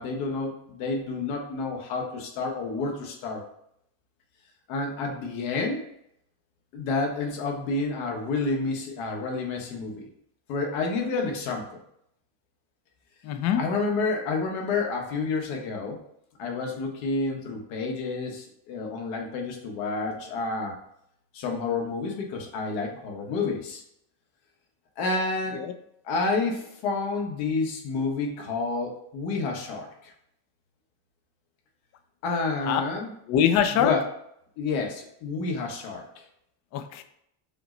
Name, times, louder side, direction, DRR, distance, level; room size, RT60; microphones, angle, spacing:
voice 1, 0.0-3.4 4.7-5.8 6.7-10.1 10.5-11.7 13.6-16.0 16.4-20.7 21.3-23.8 25.0-25.6 26.0-30.1 32.2-33.1 33.7-34.0 34.6-36.2, left 3 dB, 75° left, 2 dB, 1.2 m, -29 dB
voice 2, 13.2-13.6 25.6-25.7 32.7-32.8 33.3-33.9 36.7-37.0, left 9 dB, 35° left, 8 dB, 0.4 m, -23 dB
5.8 x 2.1 x 3.8 m, 0.73 s
cardioid pair, 135°, 48 cm